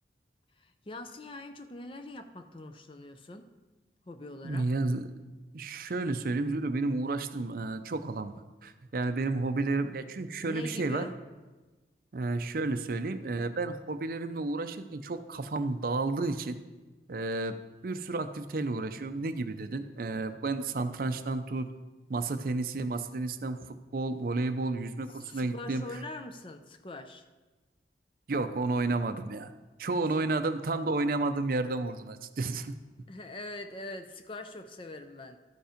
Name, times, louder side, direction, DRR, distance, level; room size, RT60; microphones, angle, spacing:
voice 1, 0.6-3.5 4.1-4.7 10.1-11.2 25.1-27.3 33.1-35.4, left 2 dB, 30° left, 8 dB, 0.5 m, -43 dB
voice 2, 4.4-5.1 5.5-11.0 12.1-16.6 17.1-17.6 17.8-21.7 22.1-25.8 28.3-29.5 29.8-32.7, right 3 dB, 50° right, 10 dB, 0.5 m, -31 dB
12.5 x 5.3 x 5.0 m, 1.2 s
head